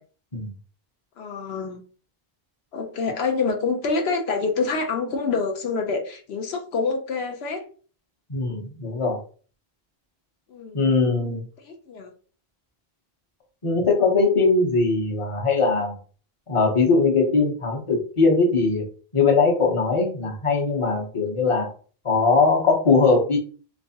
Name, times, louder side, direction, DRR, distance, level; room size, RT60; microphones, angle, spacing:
voice 1, 1.2-1.8 2.7-7.6 10.5-11.0 11.6-12.1, left 4 dB, 75° left, 3 dB, 0.9 m, -27 dB
voice 2, 8.3-9.2 10.7-11.4 13.6-15.9 16.5-18.8 19.1-21.7 22.0-23.4, left 4 dB, 30° left, 0 dB, 0.9 m, -20 dB
3.2 x 3.2 x 2.8 m, 0.41 s
omnidirectional pair, 1.1 m